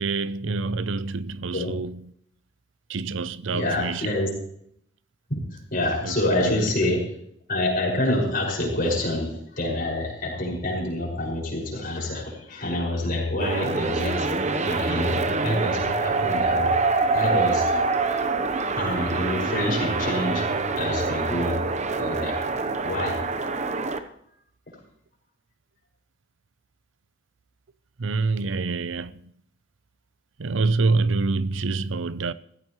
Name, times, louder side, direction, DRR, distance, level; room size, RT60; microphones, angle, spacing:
voice 1, 0.0-2.1 2.9-4.2 6.0-6.7 28.0-29.3 30.4-32.3, right 3 dB, 75° right, 0.7 m, -26 dB
voice 2, 3.5-4.3 5.3-5.4 5.7-7.1 7.5-14.3 14.6-16.7 17.1-17.6 18.8-20.5 20.8-21.6 21.9-22.4 22.8-23.2, left 1 dB, 50° left, 6.1 m, -27 dB
sound 1, 13.4-24.0, right 3 dB, 40° right, 1.0 m, -25 dB
16.5 x 15.5 x 3.2 m
head